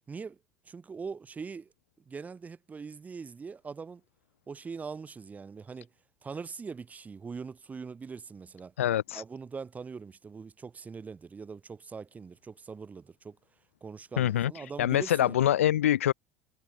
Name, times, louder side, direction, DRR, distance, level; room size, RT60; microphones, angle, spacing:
voice 1, 0.1-0.4 0.6-1.7 2.0-4.0 4.5-5.9 6.2-8.7 9.1-13.4 13.8-15.4, right 5 dB, 20° right, 1.6 m, -42 dB
voice 2, 8.8-9.2 14.2-16.1, left 12 dB, 70° left, 0.6 m, -25 dB
figure-of-eight pair, 70°, 8 cm